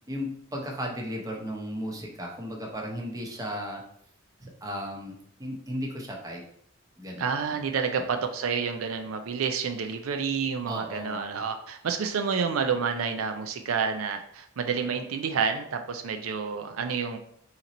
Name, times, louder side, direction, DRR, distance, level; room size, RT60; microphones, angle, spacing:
voice 1, 0.1-3.8 4.4-6.4 7.0-7.4 8.0-8.1 10.7-11.4, equal, 15° right, 0 dB, 0.8 m, -35 dB
voice 2, 7.2-17.2, right 6 dB, 80° right, 6 dB, 0.4 m, -29 dB
3.8 x 2.9 x 4.0 m, 0.68 s
head